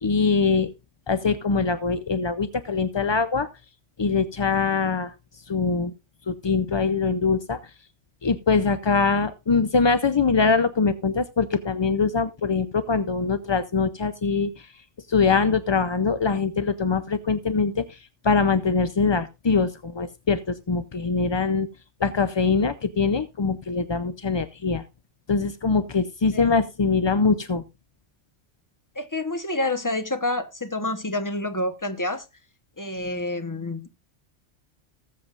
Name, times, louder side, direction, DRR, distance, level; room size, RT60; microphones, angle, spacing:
voice 1, 0.0-0.7 1.1-3.5 4.0-5.1 5.5-5.9 6.3-7.6 8.2-14.7 15.1-18.0 18.2-21.7 22.0-24.8 25.3-27.6, left 4 dB, 40° left, 0.4 m, -23 dB
voice 2, 28.9-32.2 32.8-33.9, left 2 dB, 15° left, 1.0 m, -28 dB
19.0 x 7.6 x 2.5 m
omnidirectional pair, 1.2 m